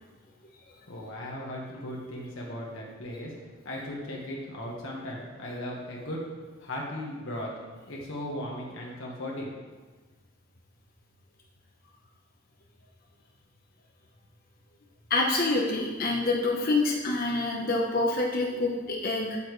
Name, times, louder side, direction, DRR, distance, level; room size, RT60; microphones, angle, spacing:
voice 1, 0.9-3.3 3.6-6.2 6.6-7.5 7.9-9.6, left 1 dB, 70° left, -3 dB, 1.5 m, -37 dB
voice 2, 15.1-19.4, left 2 dB, 45° left, -1 dB, 0.9 m, -26 dB
8.8 x 8.5 x 3.2 m, 1.3 s
head